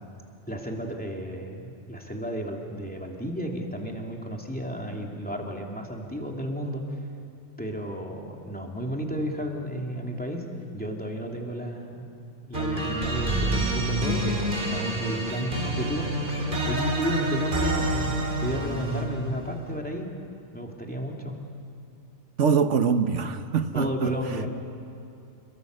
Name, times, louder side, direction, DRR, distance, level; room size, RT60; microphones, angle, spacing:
voice 1, 0.5-6.8 7.6-10.4 10.7-12.1 12.4-16.1 16.7-20.1 20.5-21.3 23.7-24.5, equal, 5° left, 0 dB, 2.8 m, -33 dB
sound 1, 12.5-19.2, right 1 dB, 45° right, 3.2 m, -27 dB
voice 2, 22.4-24.1, right 6 dB, 90° right, 9 dB, 1.4 m, -23 dB
28.5 x 22.5 x 6.7 m, 2.6 s
omnidirectional pair, 1.2 m